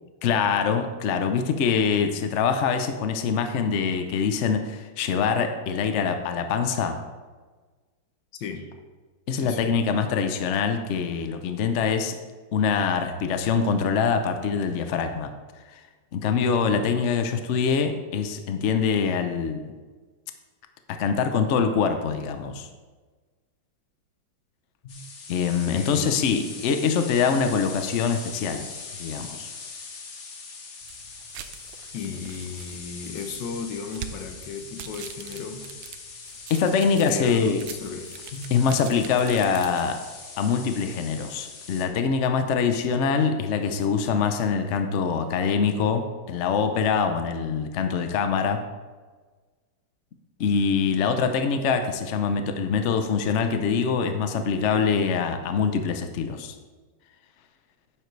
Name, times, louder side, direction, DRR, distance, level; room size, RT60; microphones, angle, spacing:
voice 1, 0.2-7.0 9.3-12.2 12.5-15.3 15.7-15.8 16.1-19.7 20.9-22.7 24.8-28.7 29.0-29.5 36.5-37.6 38.3-40.0 40.4-48.6 50.4-56.5, left 6 dB, 90° left, 7 dB, 0.6 m, -24 dB
voice 2, 8.3-8.7 9.3-9.7 25.7-26.1 31.9-35.7 37.0-38.2, left 5 dB, 65° left, 6 dB, 1.5 m, -35 dB
sound 1, 24.9-41.9, left 4 dB, 45° left, 1.0 m, -41 dB
sound 2, 30.8-40.1, right 9 dB, 70° right, 1.2 m, -44 dB
10.0 x 7.7 x 3.2 m, 1.4 s
omnidirectional pair, 2.2 m